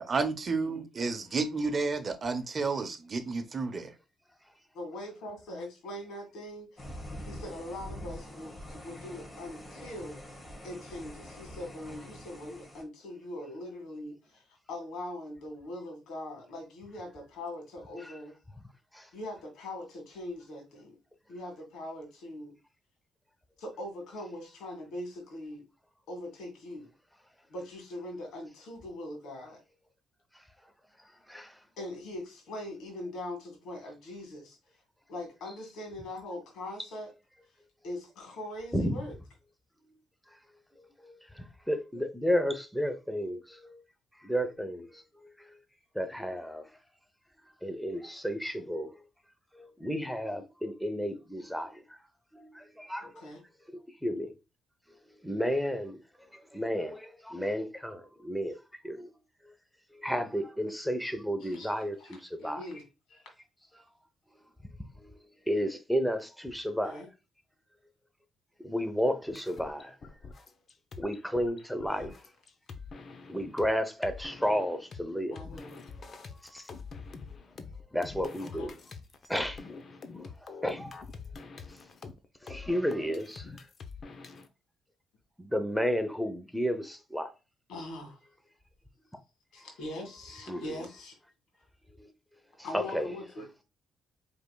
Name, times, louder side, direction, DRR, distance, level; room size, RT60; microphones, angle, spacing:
voice 1, 0.1-3.9, right 4 dB, 40° right, 0.8 m, -31 dB
voice 2, 4.8-6.7 7.2-10.2 10.6-18.3 19.1-21.0 21.3-22.5 23.6-25.6 26.1-26.9 27.5-29.6 31.8-34.6 35.1-37.1 37.8-39.2 53.0-53.4 61.4-63.2 66.8-67.1 71.9-72.1 75.3-75.8 78.4-78.7 87.7-88.2 89.5-91.1 92.6-93.5, left 1 dB, 80° left, 1.9 m, -41 dB
sound 1, 6.8-12.8, left 1 dB, 30° left, 1.6 m, -45 dB
voice 3, 41.7-43.8 44.2-44.9 45.9-46.6 47.6-48.9 49.5-51.8 52.3-53.1 54.0-54.3 55.2-56.0 56.5-58.5 58.8-59.1 60.0-62.2 62.4-62.6 65.0-65.1 65.5-67.0 68.6-69.9 71.0-72.1 73.3-75.4 76.5-76.6 77.9-78.7 79.3-79.6 80.6-80.9 82.4-83.5 85.4-87.3 90.5-90.8 92.0-92.1 92.7-93.1, equal, ahead, 0.8 m, -32 dB
sound 2, 69.3-73.7 74.0-75.0 75.4-84.5, left 4 dB, 45° left, 0.7 m, -45 dB
4.9 x 3.5 x 2.3 m
cardioid pair, 90°, 0 cm